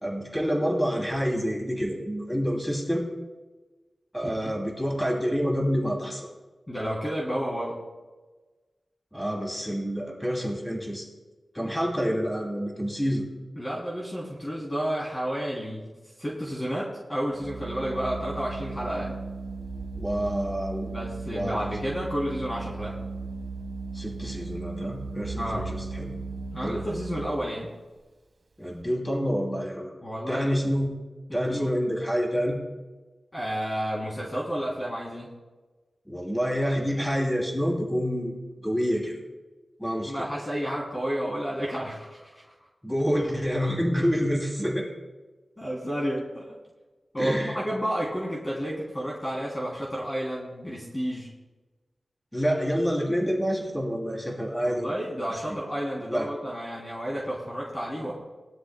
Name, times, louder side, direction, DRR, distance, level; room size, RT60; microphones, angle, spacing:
voice 1, 0.0-3.1 4.1-6.3 9.1-11.0 11.5-13.2 19.9-20.9 21.3-21.6 23.9-26.2 26.6-26.8 28.6-29.9 30.3-31.0 31.3-32.6 36.1-38.4 38.6-39.1 39.8-40.3 42.8-44.9 47.2-47.6 52.3-54.9 55.5-55.6 56.1-56.3, equal, ahead, -1 dB, 2.7 m, -27 dB
voice 2, 4.2-4.5 6.7-7.8 13.6-15.9 16.2-19.1 20.9-23.0 25.4-25.7 26.5-27.7 30.0-30.6 31.3-31.7 33.3-35.3 40.0-42.4 45.6-46.6 47.1-51.3 54.6-58.1, equal, 20° left, -5 dB, 3.1 m, -31 dB
Organ, 17.3-27.6, right 3 dB, 65° right, 1.1 m, -36 dB
20.0 x 12.5 x 2.2 m, 1.2 s
wide cardioid pair, 90°, 0 cm